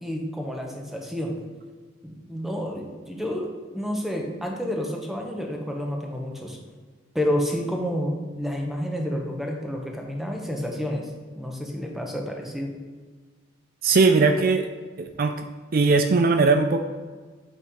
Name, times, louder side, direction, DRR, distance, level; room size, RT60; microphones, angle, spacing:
voice 1, 0.0-1.4 2.0-6.6 7.1-11.1 11.4-12.7, equal, ahead, 0 dB, 0.9 m, -29 dB
voice 2, 13.8-14.7 15.0-15.4 15.7-16.8, right 4 dB, 50° right, 6 dB, 0.4 m, -19 dB
8.6 x 3.2 x 5.4 m, 1.4 s
head